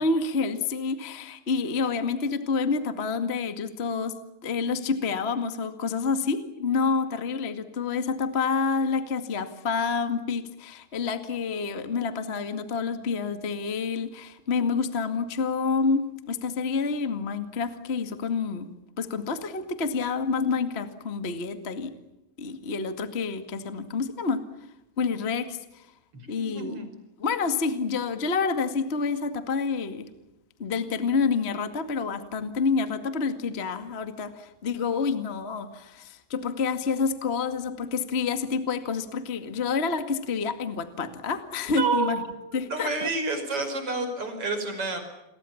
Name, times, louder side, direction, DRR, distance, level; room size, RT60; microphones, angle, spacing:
voice 1, 0.0-4.1 4.4-18.7 19.0-21.9 22.4-24.4 25.0-25.8 26.3-26.8 27.2-30.1 30.6-42.2 42.5-43.1, left 5 dB, 55° left, 9 dB, 0.6 m, -28 dB
voice 2, 26.1-26.9 41.8-45.0, right 3 dB, 30° right, 7 dB, 6.0 m, -29 dB
30.0 x 22.5 x 7.2 m, 0.92 s
omnidirectional pair, 5.0 m